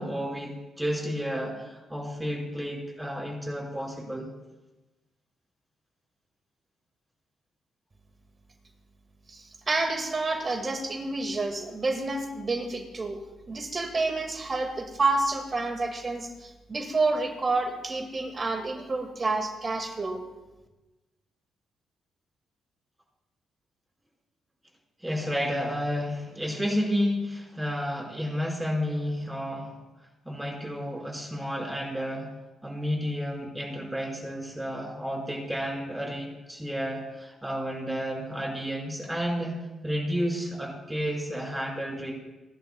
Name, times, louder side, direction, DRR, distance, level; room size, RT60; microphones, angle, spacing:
voice 1, 0.0-4.3 25.0-29.8 30.3-32.3 32.6-39.6 39.8-42.1, equal, 10° right, -1 dB, 5.3 m, -31 dB
voice 2, 9.3-13.2 13.5-20.2, right 3 dB, 40° right, 6 dB, 2.1 m, -29 dB
23.0 x 11.0 x 2.4 m, 1.1 s
hypercardioid pair, 45°, 0 cm